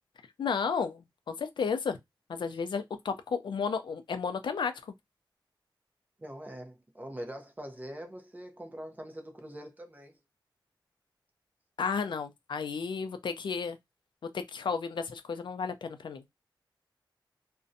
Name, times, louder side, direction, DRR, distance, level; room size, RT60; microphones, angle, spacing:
voice 1, 0.4-2.0 2.3-4.7 11.8-13.8 14.3-16.2, left 5 dB, 70° left, 0.4 m, -33 dB
voice 2, 6.2-10.2, right 1 dB, 20° right, 0.6 m, -43 dB
2.5 x 2.1 x 2.5 m
wide cardioid pair, 120°, 8 cm